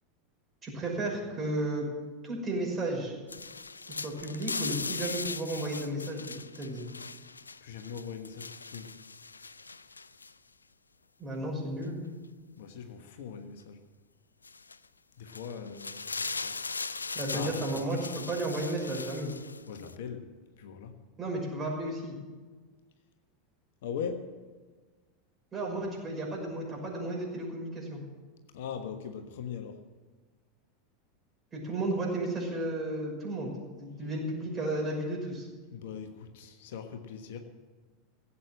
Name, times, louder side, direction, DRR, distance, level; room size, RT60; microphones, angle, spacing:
voice 1, 0.6-1.9 2.2-3.1 3.9-6.3 6.5-6.8 11.2-12.0 17.1-19.3 21.2-22.1 25.5-28.0 31.5-33.5 33.8-35.5, right 1 dB, 25° right, -1 dB, 5.9 m, -33 dB
sound 1, 3.3-10.3 11.8-11.9 14.4-14.8 15.3-20.0, left 4 dB, 85° left, 0.4 m, -39 dB
voice 2, 7.6-9.0 12.6-13.8 15.2-16.6 17.0-17.9 19.7-20.3 20.6-20.9 23.8-24.3 28.5-29.8 35.7-37.4, left 7 dB, 60° left, 6 dB, 1.3 m, -40 dB
16.5 x 8.4 x 7.6 m, 1.4 s
figure-of-eight pair, 85°, 0 cm